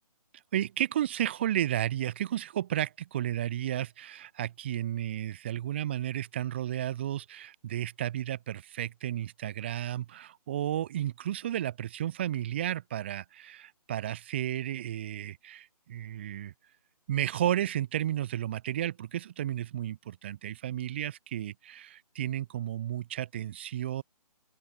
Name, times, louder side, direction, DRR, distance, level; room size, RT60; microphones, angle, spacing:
voice 1, 0.5-16.5 17.1-24.0, right 11 dB, 20° right, 0.6 m, -33 dB
open air
figure-of-eight pair, 145°, 20 cm